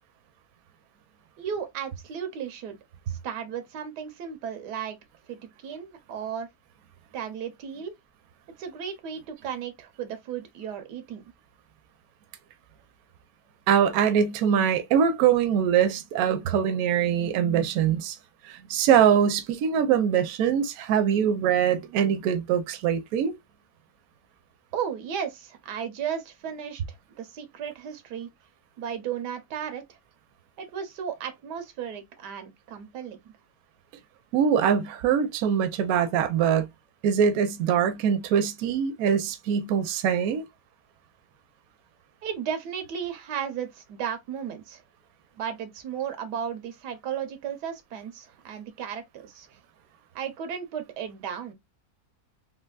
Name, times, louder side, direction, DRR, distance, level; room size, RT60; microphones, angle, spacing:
voice 1, 1.4-2.8 3.2-5.0 5.3-6.5 7.1-7.9 8.6-11.2 24.7-28.3 28.8-30.0 30.6-33.3 42.2-44.8 45.4-49.5 50.1-51.5, right 8 dB, 90° right, 1.4 m, -34 dB
voice 2, 13.7-18.2 18.4-23.3 34.3-36.6 37.0-40.4, right 8 dB, 70° right, 1.0 m, -23 dB
3.3 x 2.8 x 2.2 m
omnidirectional pair, 1.7 m